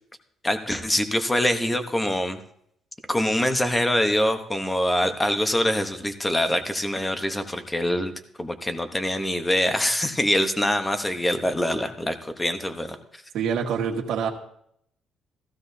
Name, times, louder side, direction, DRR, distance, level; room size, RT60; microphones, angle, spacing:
voice 1, 0.4-2.4 3.1-8.1 8.4-13.0, left 1 dB, 10° left, 8 dB, 0.9 m, -24 dB
voice 2, 13.3-14.3, right 7 dB, 70° right, 1 dB, 1.8 m, -26 dB
15.0 x 15.0 x 2.7 m, 0.70 s
cardioid pair, 160°, 0 cm